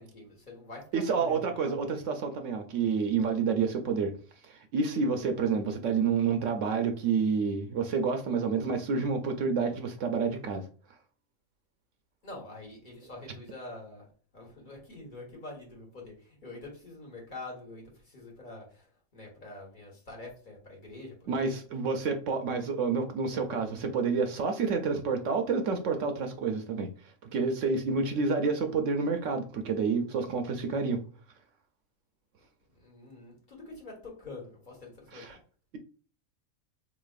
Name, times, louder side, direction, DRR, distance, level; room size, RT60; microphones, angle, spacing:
voice 1, 0.0-1.8 12.2-14.1 14.3-18.9 19.1-21.6 32.7-35.4, left 2 dB, 40° left, -2 dB, 1.3 m, -46 dB
voice 2, 0.9-4.1 4.4-10.6 21.3-26.9 27.2-31.0 35.1-35.4, right 5 dB, 70° right, 6 dB, 0.9 m, -29 dB
4.0 x 3.0 x 2.4 m, 0.42 s
omnidirectional pair, 1.4 m